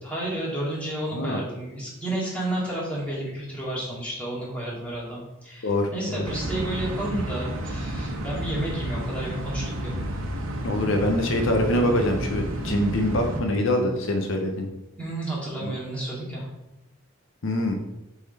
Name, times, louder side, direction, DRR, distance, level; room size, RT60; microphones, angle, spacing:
voice 1, 0.0-9.9 15.0-16.5, right 1 dB, 5° left, -7 dB, 2.2 m, -31 dB
voice 2, 5.6-6.2 10.6-14.7 15.6-15.7 17.4-17.8, left 1 dB, 65° left, 4 dB, 0.7 m, -24 dB
sound 1, 6.2-13.4, right 1 dB, 85° right, 1.0 m, -31 dB
6.8 x 3.5 x 4.2 m, 0.93 s
head